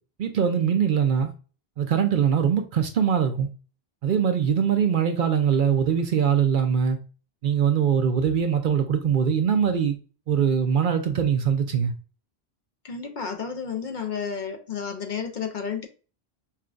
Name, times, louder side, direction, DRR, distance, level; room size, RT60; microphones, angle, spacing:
voice 1, 0.2-1.3 1.8-3.5 4.0-7.0 7.4-9.9 10.3-11.9, right 7 dB, 60° right, 0.6 m, -22 dB
voice 2, 12.8-15.9, left 6 dB, 55° left, 0.7 m, -31 dB
5.6 x 2.2 x 2.4 m
omnidirectional pair, 1.1 m